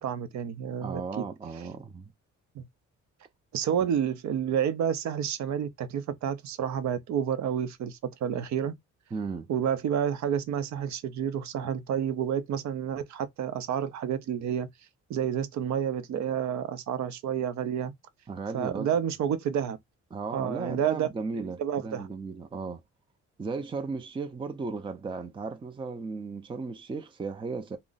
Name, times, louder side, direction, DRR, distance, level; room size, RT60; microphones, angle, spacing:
voice 1, 0.0-1.2 2.6-2.7 3.5-8.7 9.5-14.7 15.1-17.9 18.5-19.8 20.3-21.1 21.6-22.1, right 9 dB, 65° right, 0.6 m, -29 dB
voice 2, 0.8-2.1 9.1-9.5 18.3-18.9 20.1-22.8 23.4-27.8, right 4 dB, 15° right, 0.5 m, -35 dB
2.4 x 2.0 x 3.8 m
cardioid pair, 90°, 30 cm